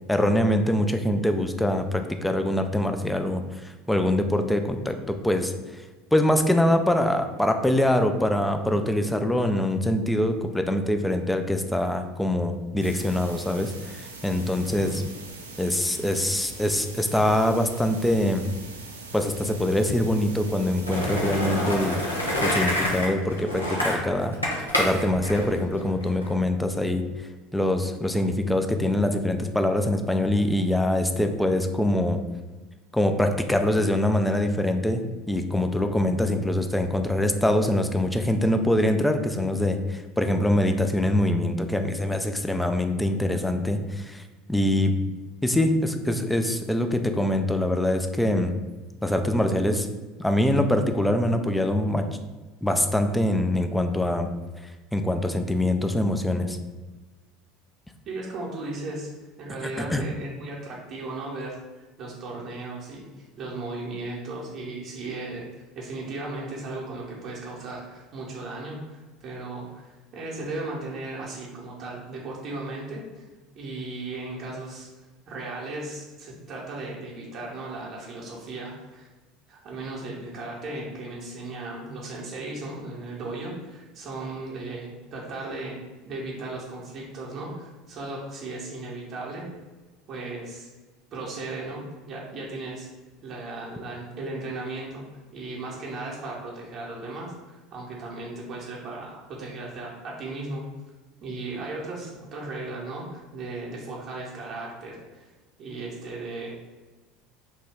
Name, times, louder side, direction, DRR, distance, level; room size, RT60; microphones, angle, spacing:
voice 1, 0.1-5.5 6.1-15.0 15.6-18.5 19.1-22.0 22.4-24.4 24.8-27.0 27.5-32.2 32.9-35.0 35.3-44.2 44.5-44.9 45.4-48.6 49.0-49.9 50.2-52.0 52.6-54.3 54.9-56.6 59.6-60.0, left 1 dB, 5° left, 6 dB, 0.3 m, -24 dB
sound 1, 12.8-23.0, right 3 dB, 80° right, 0.3 m, -42 dB
voice 2, 14.6-15.0 58.1-59.1 59.4-73.3 73.6-74.9 75.3-79.1 79.5-85.8 86.1-89.5 90.1-90.7 91.1-92.9 93.2-95.1 95.3-100.7 101.2-105.3 105.6-106.5, right 2 dB, 40° right, -4 dB, 0.7 m, -36 dB
Skateboard, 20.9-26.3, left 1 dB, 90° left, 0.5 m, -27 dB
2.9 x 2.2 x 3.3 m, 1.2 s
figure-of-eight pair, 70°, 0 cm